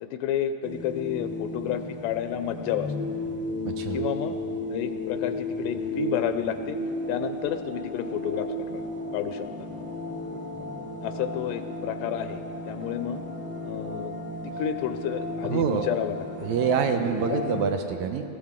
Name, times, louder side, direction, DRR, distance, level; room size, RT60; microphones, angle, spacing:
voice 1, 0.0-2.9 3.9-4.4 4.7-6.8 7.1-8.8 9.1-9.5 10.5-10.7 11.0-13.2 13.6-14.1 14.4-16.2 16.4-16.5 17.0-17.4, left 10 dB, 80° left, 9 dB, 2.2 m, -31 dB
sound 1, 0.6-17.7, left 1 dB, 5° right, 0.9 m, -34 dB
voice 2, 3.7-4.0 15.4-15.9 16.4-18.3, right 7 dB, 80° right, 6 dB, 1.8 m, -26 dB
19.5 x 16.0 x 3.6 m, 2.6 s
omnidirectional pair, 3.9 m